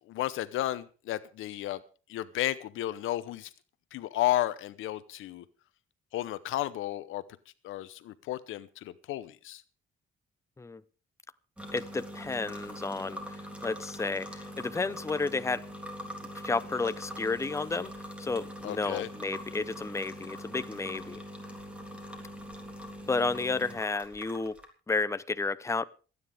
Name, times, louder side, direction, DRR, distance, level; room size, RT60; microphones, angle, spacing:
voice 1, 0.0-1.8 2.1-3.5 3.9-5.4 6.1-7.2 7.6-9.6 18.6-19.1, left 14 dB, 85° left, 0.9 m, -33 dB
sound 1, 11.6-24.7, equal, 5° right, 3.5 m, -43 dB
voice 2, 11.7-15.7 16.4-17.9 18.2-21.2 23.1-24.6 24.9-25.9, left 3 dB, 15° left, 0.7 m, -32 dB
27.0 x 9.7 x 3.5 m
cardioid pair, 90°, 20 cm